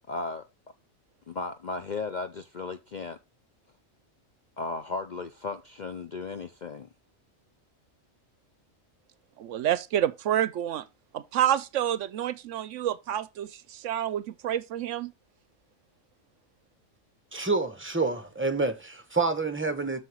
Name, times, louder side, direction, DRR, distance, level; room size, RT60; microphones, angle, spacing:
voice 1, 0.1-0.4 1.3-3.2 4.6-6.9, left 3 dB, 50° left, 0.5 m, -35 dB
voice 2, 9.4-10.8 11.1-15.1, right 11 dB, 70° right, 0.9 m, -28 dB
voice 3, 17.3-20.0, right 3 dB, 10° right, 0.8 m, -28 dB
7.6 x 6.6 x 3.0 m
omnidirectional pair, 1.4 m